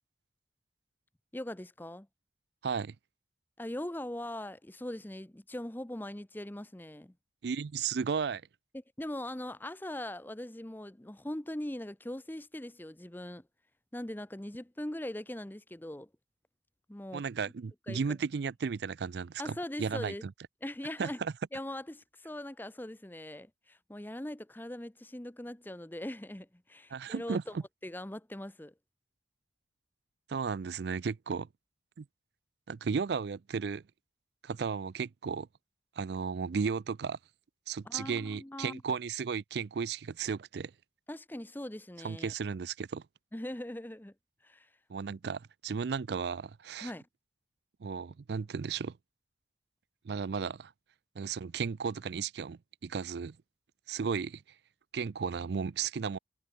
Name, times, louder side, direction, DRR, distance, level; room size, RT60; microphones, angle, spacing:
voice 1, 1.3-2.1 3.6-7.1 9.0-13.4 13.9-16.1 16.9-17.2 17.9-18.0 19.4-20.2 20.6-21.2 21.5-27.6 27.8-28.7 37.9-38.8 41.1-42.3 43.3-44.1 44.4-44.7 46.8-47.1, left 1 dB, 10° left, 0.7 m, -41 dB
voice 2, 2.6-2.9 7.4-8.4 17.1-20.3 21.0-21.3 26.9-27.4 30.3-31.5 32.0-32.1 32.7-33.8 34.4-35.5 36.0-37.2 37.7-40.7 42.0-43.0 44.9-46.9 47.8-49.0 50.0-50.7 51.2-53.4 53.9-54.4 54.9-56.2, right 5 dB, 60° right, 0.4 m, -34 dB
head